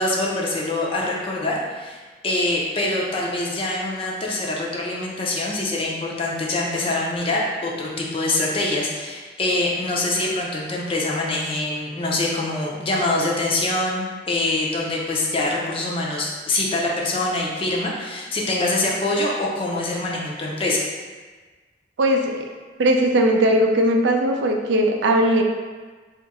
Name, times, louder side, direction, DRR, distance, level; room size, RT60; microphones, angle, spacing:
voice 1, 0.0-20.8, left 2 dB, 30° left, -3 dB, 0.5 m, -24 dB
voice 2, 22.0-22.3 22.8-25.4, right 1 dB, 85° right, 2 dB, 0.4 m, -18 dB
2.7 x 2.5 x 4.0 m, 1.4 s
head